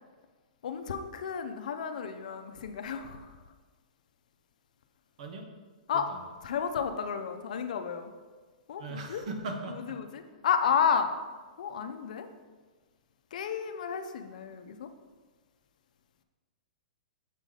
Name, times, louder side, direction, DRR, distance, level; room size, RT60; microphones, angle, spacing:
voice 1, 0.6-3.4 5.9-6.1 6.4-8.1 8.7-9.2 9.9-11.1 11.6-12.3 13.3-14.9, left 7 dB, 70° left, 8 dB, 0.6 m, -31 dB
voice 2, 8.8-10.0, right 2 dB, 60° right, 4 dB, 1.1 m, -39 dB
7.4 x 4.9 x 3.9 m, 1.4 s
hypercardioid pair, 155°, 4 cm